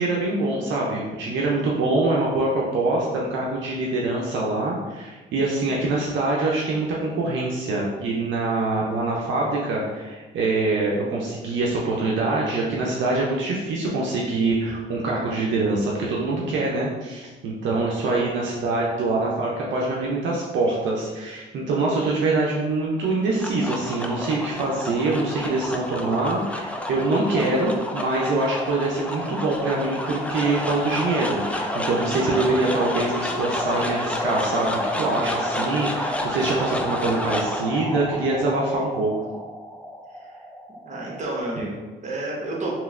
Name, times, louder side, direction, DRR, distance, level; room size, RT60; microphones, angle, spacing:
voice 1, 0.0-39.3, right 2 dB, 70° right, -3 dB, 0.5 m, -24 dB
sound 1, 23.1-41.4, left 1 dB, 5° left, 0.3 m, -30 dB
voice 2, 40.8-42.7, right 2 dB, 35° right, -3 dB, 1.0 m, -31 dB
3.0 x 2.9 x 2.4 m, 1.2 s
cardioid pair, 90°, 20 cm